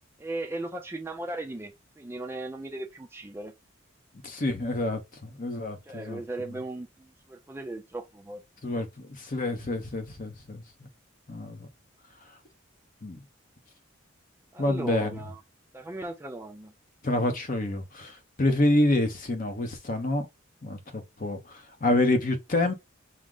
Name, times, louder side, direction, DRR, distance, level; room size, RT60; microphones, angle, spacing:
voice 1, 0.2-3.5 5.8-8.4 14.5-15.4 15.7-16.7, right 2 dB, 10° right, 0.4 m, -37 dB
voice 2, 4.2-6.2 8.6-10.9 11.3-11.7 13.0-13.2 14.6-15.2 17.0-20.3 20.6-22.7, left 2 dB, 40° left, 0.7 m, -28 dB
6.1 x 2.1 x 3.7 m
head